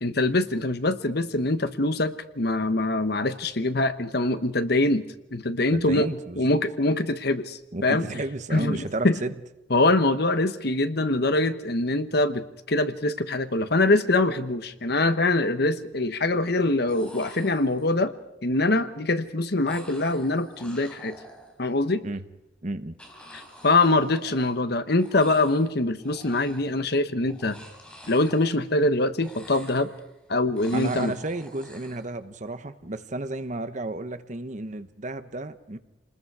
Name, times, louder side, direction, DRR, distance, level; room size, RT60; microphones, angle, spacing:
voice 1, 0.0-5.0 5.3-6.1 6.4-8.1 8.5-9.2 9.7-18.1 18.4-21.1 21.6-22.0 23.3-27.6 28.1-29.9 30.3-31.1, left 2 dB, 60° left, 11 dB, 1.2 m, -24 dB
voice 2, 5.7-6.6 7.7-9.3 22.0-22.2 22.6-23.0 30.7-35.8, right 2 dB, 40° right, 11 dB, 1.0 m, -32 dB
sound 1, 14.6-14.7 15.0-15.6 16.6-16.7 16.9-18.1 19.7-21.9 23.0-24.7 25.0-25.7 26.0-26.8 27.2-28.9 29.2-30.2 30.6-32.1, equal, 5° left, 3.7 m, -48 dB
28.5 x 20.5 x 4.9 m, 0.93 s
head